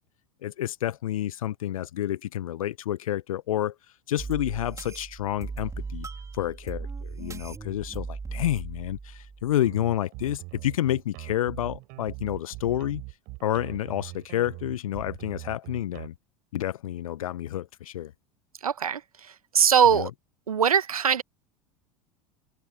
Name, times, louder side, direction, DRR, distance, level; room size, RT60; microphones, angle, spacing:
voice 1, 0.4-3.7 4.1-6.1 6.3-13.0 13.4-16.1 16.5-18.1 19.9-20.1, left 12 dB, 70° left, 1.1 m, -29 dB
sound 1, 4.2-9.8, right 4 dB, 15° right, 4.6 m, -38 dB
sound 2, 9.6-16.1, right 27 dB, 50° right, 7.2 m, -41 dB
voice 2, 18.6-20.1 20.5-21.2, right 8 dB, 80° right, 1.3 m, -22 dB
figure-of-eight pair, 80°, 18 cm